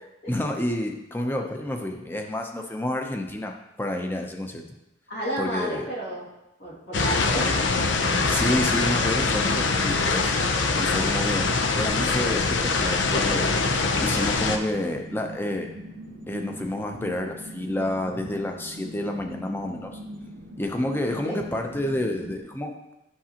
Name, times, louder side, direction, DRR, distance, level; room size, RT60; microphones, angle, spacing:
voice 1, 0.3-4.7 5.4-5.9 8.3-10.3 10.8-13.5 14.0-15.7 16.3-20.0 20.6-22.7, left 1 dB, 10° left, 3 dB, 0.6 m, -29 dB
voice 2, 5.1-6.3 6.6-7.6 21.2-21.4, right 1 dB, 65° left, -6 dB, 2.4 m, -31 dB
sound 1, 6.9-14.6, left 3 dB, 90° left, 0.6 m, -23 dB
sound 2, 14.5-22.4, equal, 75° right, 0.7 m, -41 dB
10.0 x 6.0 x 2.9 m, 0.92 s
head